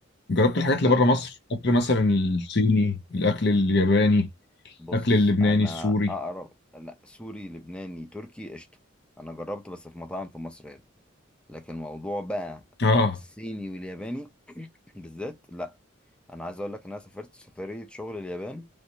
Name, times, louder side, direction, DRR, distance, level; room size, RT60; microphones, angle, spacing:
voice 1, 0.3-1.3 1.6-4.3 4.9-6.1 12.8-13.2, left 2 dB, 60° left, 0.8 m, -21 dB
voice 2, 4.8-8.7 9.2-10.8 11.5-12.6 12.9-13.1 13.4-15.8 16.3-18.7, left 1 dB, 5° left, 0.5 m, -37 dB
3.2 x 2.6 x 2.9 m
head